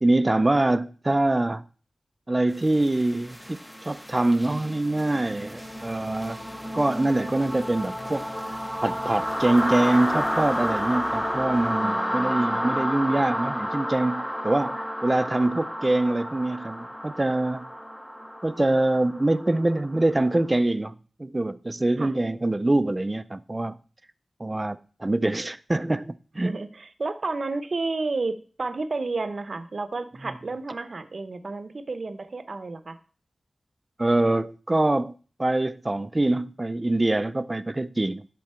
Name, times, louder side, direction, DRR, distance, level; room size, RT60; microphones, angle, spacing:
voice 1, 0.0-1.6 2.3-6.4 6.7-8.3 8.8-17.7 18.4-23.8 24.4-26.5 34.0-35.1 35.4-38.3, right 2 dB, 25° right, 0.4 m, -24 dB
sound 1, 2.6-20.4, equal, 5° left, 0.7 m, -31 dB
voice 2, 11.8-12.6 22.0-22.1 26.4-33.0, right 3 dB, 60° right, 0.7 m, -31 dB
11.0 x 3.9 x 4.3 m
wide cardioid pair, 85°, 0 cm